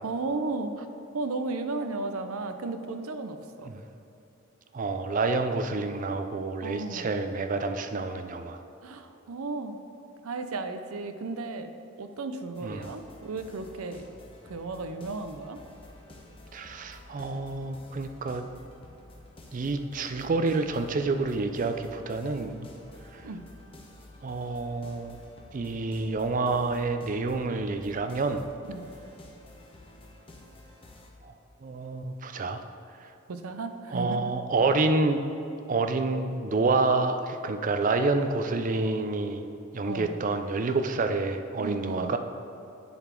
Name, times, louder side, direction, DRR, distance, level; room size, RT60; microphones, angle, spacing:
voice 1, 0.0-0.9 1.1-3.7 6.6-7.2 8.8-9.8 10.2-11.7 12.0-14.0 14.4-15.6 23.2-23.4 28.7-28.8 33.3-34.4 39.8-40.1 41.6-42.1, right 3 dB, 85° right, 8 dB, 0.6 m, -34 dB
voice 2, 4.7-8.6 12.6-12.9 16.5-18.4 19.5-22.7 23.1-23.2 24.2-25.2 25.5-28.4 31.6-32.6 33.9-35.2 35.7-39.5 39.7-42.2, right 3 dB, 40° right, 8 dB, 0.4 m, -28 dB
sound 1, 12.5-31.1, left 1 dB, 25° left, 0.9 m, -51 dB
10.0 x 4.1 x 4.4 m, 2.9 s
head